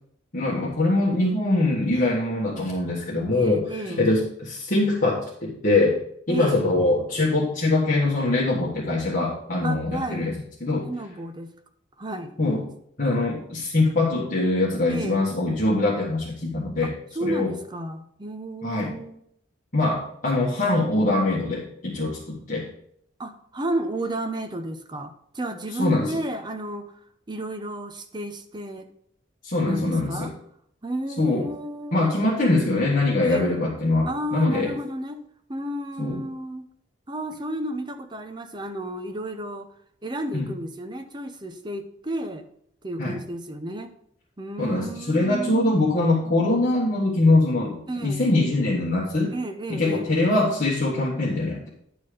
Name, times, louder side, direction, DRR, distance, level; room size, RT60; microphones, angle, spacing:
voice 1, 0.3-6.0 6.3-10.3 10.6-10.9 12.4-12.6 13.0-16.9 17.2-17.5 18.6-18.9 19.7-22.7 25.8-26.2 29.4-30.3 31.2-31.5 31.9-34.7 36.0-36.2 40.3-40.5 43.0-43.2 44.6-49.3 49.7-51.7, left 2 dB, 45° left, -6 dB, 1.6 m, -23 dB
voice 2, 3.3-4.1 6.3-6.6 9.6-10.3 10.8-11.5 12.0-12.4 14.9-15.3 16.8-19.2 23.2-27.0 27.3-28.9 29.6-30.3 30.8-32.2 33.2-33.6 34.0-35.2 35.5-36.6 37.1-39.7 40.0-42.5 42.8-43.9 44.4-45.7 47.9-48.3 49.3-50.1, right 1 dB, 25° right, 7 dB, 0.7 m, -32 dB
10.0 x 4.4 x 5.0 m, 0.69 s
head